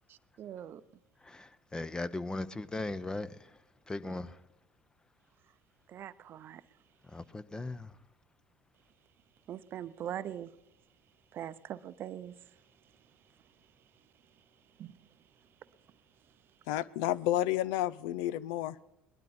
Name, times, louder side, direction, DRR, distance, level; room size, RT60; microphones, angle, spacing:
voice 1, 0.1-0.8 5.9-6.6 9.5-10.5 11.3-12.3 14.8-15.0, right 10 dB, 50° right, 0.6 m, -41 dB
voice 2, 1.2-3.6 3.9-4.4 7.0-8.0, left 2 dB, 15° left, 0.8 m, -38 dB
voice 3, 16.7-18.8, left 14 dB, 75° left, 0.5 m, -31 dB
20.0 x 12.0 x 4.3 m
hypercardioid pair, 75°, 5 cm